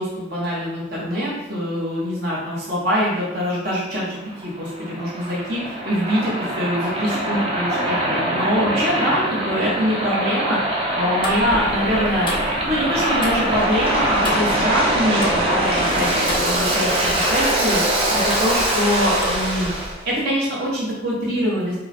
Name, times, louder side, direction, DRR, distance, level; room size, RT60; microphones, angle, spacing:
voice 1, 0.0-4.2 4.4-10.6 10.9-12.3 12.6-17.8 18.1-19.7 20.0-21.8, equal, 50° right, -6 dB, 1.1 m, -24 dB
Waves surf, 4.1-19.9, right 1 dB, 30° right, 0.8 m, -23 dB
Tick-tock, 11.2-19.9, left 1 dB, 25° left, 0.6 m, -33 dB
5.4 x 2.2 x 4.3 m, 0.98 s
head